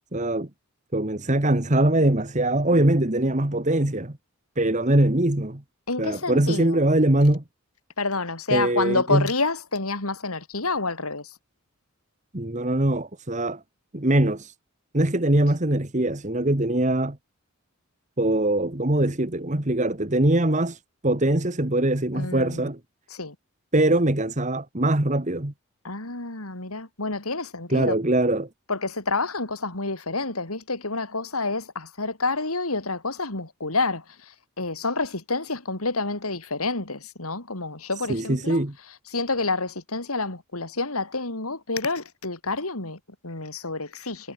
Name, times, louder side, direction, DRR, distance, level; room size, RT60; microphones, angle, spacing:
voice 1, 0.1-0.5 0.9-4.2 4.6-5.6 6.0-7.4 8.5-9.3 12.3-13.6 13.9-14.5 14.9-17.2 18.2-22.8 23.7-25.5 27.7-28.5 38.1-38.7, right 1 dB, 35° right, 1.7 m, -22 dB
voice 2, 5.9-6.8 8.0-11.3 22.1-22.7 23.1-23.4 23.8-23.9 25.8-28.0 28.7-38.6 39.1-44.3, left 3 dB, 80° left, 4.2 m, -28 dB
head